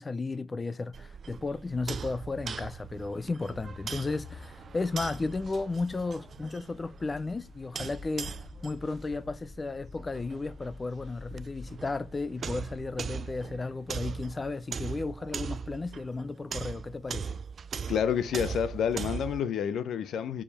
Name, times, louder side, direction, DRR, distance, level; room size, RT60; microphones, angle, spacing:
voice 1, 0.0-17.4, left 3 dB, 25° left, 0.5 m, -34 dB
sound 1, 0.9-19.4, right 6 dB, 45° right, 0.5 m, -40 dB
sound 2, 3.5-13.0, left 4 dB, 50° left, 3.0 m, -48 dB
voice 2, 17.9-20.4, left 8 dB, 70° left, 0.8 m, -29 dB
7.1 x 5.0 x 4.2 m
cardioid pair, 90°, 0 cm